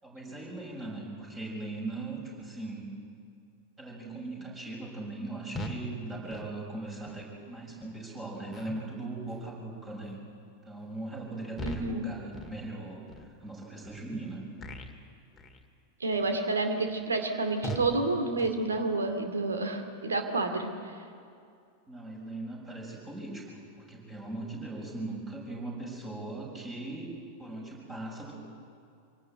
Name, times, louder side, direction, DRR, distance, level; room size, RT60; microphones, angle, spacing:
voice 1, 0.0-2.9 3.8-10.2 10.6-13.0 13.4-14.4 21.9-27.1 27.4-28.3, right 2 dB, 20° right, -2 dB, 6.3 m, -39 dB
sound 1, 5.5-5.9 6.3-6.5 7.0-7.3 7.8-8.0 8.5-8.9 9.3-9.6 10.0-10.3 10.8-11.0 11.5-12.0 12.3-12.6 13.1-13.2 13.8-14.0 14.6-15.0 15.3-15.6 16.1-16.4 16.9-17.0 17.6-18.0 18.4-18.6, right 1 dB, 15° left, 2.0 m, -40 dB
voice 2, 11.6-12.1 16.0-20.7, right 3 dB, 70° right, 6 dB, 2.5 m, -29 dB
25.0 x 18.5 x 7.9 m, 2.4 s
figure-of-eight pair, 90°, 0 cm